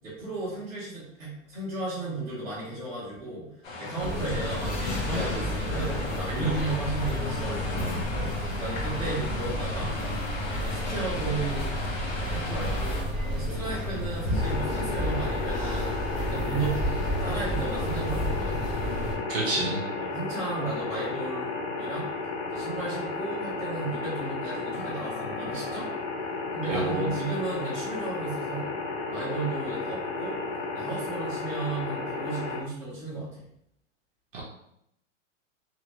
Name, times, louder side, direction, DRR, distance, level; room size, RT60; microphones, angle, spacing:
voice 1, 0.0-3.5 3.8-8.0 8.6-9.9 10.5-11.7 12.3-13.0 13.3-15.9 16.2-16.8 17.2-18.6 19.4-22.1 22.5-25.9 26.5-28.8 29.1-30.4 30.7-33.5, right 3 dB, 5° right, -13 dB, 0.7 m, -34 dB
sound 1, 3.6-13.0, left 3 dB, 75° left, 1.0 m, -36 dB
sound 2, 4.0-19.1, equal, 20° left, 0.8 m, -31 dB
sound 3, 14.3-32.6, left 3 dB, 50° left, 0.5 m, -33 dB
voice 2, 19.3-19.8 26.7-27.2 34.3-34.4, right 3 dB, 45° right, -3 dB, 0.7 m, -28 dB
2.6 x 2.4 x 2.9 m, 0.76 s
supercardioid pair, 180°, 39 cm